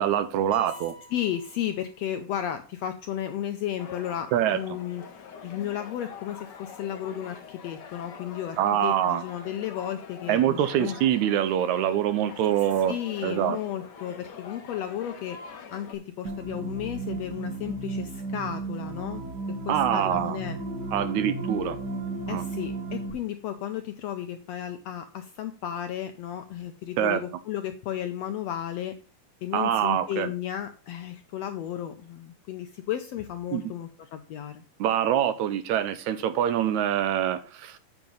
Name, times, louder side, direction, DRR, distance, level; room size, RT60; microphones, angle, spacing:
voice 1, 0.0-0.9 4.3-4.6 8.6-9.2 10.3-12.9 13.2-13.6 19.7-20.4 20.9-21.8 22.3-22.4 27.0-27.2 29.5-30.3 33.5-33.6 34.8-37.8, right 10 dB, 80° right, 1.9 m, -25 dB
sound 1, 0.5-2.4, left 1 dB, 25° right, 2.3 m, -48 dB
voice 2, 1.1-5.0 5.4-10.9 12.9-15.4 15.7-19.2 19.7-20.6 22.3-28.9 29.4-34.6, left 11 dB, 80° left, 1.5 m, -33 dB
sound 2, 3.8-16.0, left 6 dB, 65° left, 1.1 m, -45 dB
sound 3, 16.2-23.1, right 3 dB, 50° right, 1.3 m, -34 dB
8.8 x 5.9 x 3.8 m
omnidirectional pair, 3.6 m